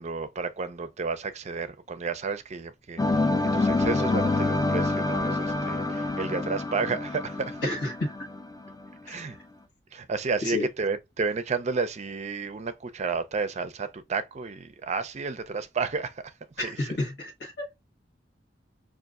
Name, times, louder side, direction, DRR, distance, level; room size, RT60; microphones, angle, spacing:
voice 1, 0.0-7.6 9.0-9.4 9.9-16.3 16.6-17.0, right 4 dB, 40° right, 0.5 m, -32 dB
sound 1, 3.0-8.9, left 2 dB, 20° left, 0.4 m, -27 dB
voice 2, 7.6-7.9 9.1-9.2 10.4-10.7 16.6-17.6, left 2 dB, 65° left, 1.2 m, -30 dB
5.5 x 2.4 x 2.4 m
head